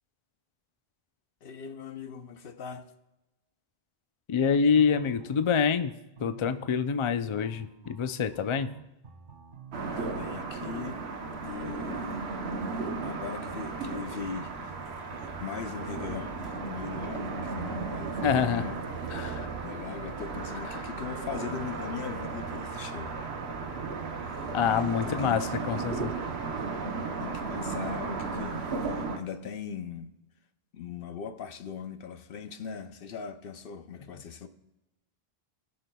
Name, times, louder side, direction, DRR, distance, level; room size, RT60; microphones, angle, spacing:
voice 1, 1.4-2.9 10.0-11.0 11.4-12.4 13.0-23.2 24.2-25.5 27.2-30.1 30.7-34.5, left 7 dB, 65° left, 0.8 m, -40 dB
voice 2, 4.3-8.7 18.2-18.7 19.1-19.5 24.5-26.1, left 6 dB, 50° left, 0.3 m, -26 dB
sound 1, 4.7-10.5, right 6 dB, 55° right, 0.8 m, -49 dB
sound 2, 9.7-29.2, right 4 dB, 85° right, 1.2 m, -35 dB
19.5 x 6.6 x 2.3 m
omnidirectional pair, 1.0 m